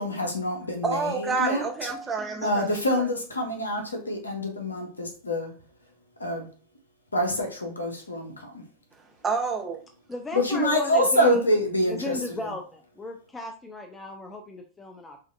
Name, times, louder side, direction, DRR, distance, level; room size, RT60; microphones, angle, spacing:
voice 1, 0.0-1.9 2.4-5.5 6.2-6.5 7.1-8.6 10.3-12.5, equal, 80° left, 0.9 m, -26 dB
voice 2, 0.8-3.0 9.2-9.8, right 4 dB, 15° right, 0.9 m, -29 dB
voice 3, 10.1-11.5 11.9-15.2, left 2 dB, 10° left, 0.5 m, -35 dB
5.5 x 2.6 x 2.5 m
figure-of-eight pair, 90°, 0 cm